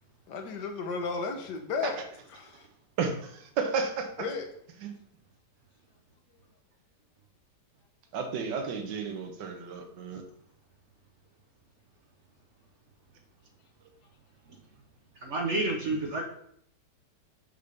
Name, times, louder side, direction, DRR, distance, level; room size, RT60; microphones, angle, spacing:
voice 1, 0.3-2.0 2.3-2.7 4.2-4.5, left 4 dB, 80° left, 4 dB, 1.4 m, -34 dB
voice 2, 3.0-4.1 4.8-4.9 8.1-10.2, right 5 dB, 85° right, 5 dB, 1.5 m, -32 dB
voice 3, 15.2-16.2, right 2 dB, 55° right, 1 dB, 0.9 m, -29 dB
5.4 x 3.4 x 5.1 m, 0.67 s
omnidirectional pair, 1.8 m